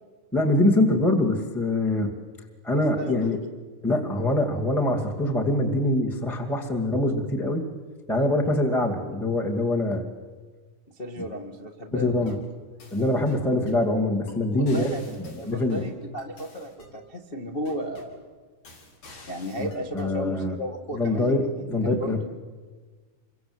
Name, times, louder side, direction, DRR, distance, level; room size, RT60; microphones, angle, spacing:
voice 1, 0.3-2.1 2.6-3.4 3.8-7.7 8.1-10.0 11.2-11.3 11.9-12.4 12.9-14.8 15.3-15.8 19.6-19.7 19.9-20.6 20.9-22.2, left 1 dB, ahead, 1 dB, 1.1 m, -24 dB
voice 2, 3.0-3.4 11.0-12.4 14.6-18.2 19.3-22.2, equal, 80° left, 1 dB, 0.5 m, -34 dB
sound 1, 12.1-12.5 12.8-13.8 14.3-14.4 14.7-17.0 17.7-18.2 18.7-20.1, left 2 dB, 60° left, 6.4 m, -47 dB
28.0 x 24.0 x 7.9 m, 1.4 s
omnidirectional pair, 4.4 m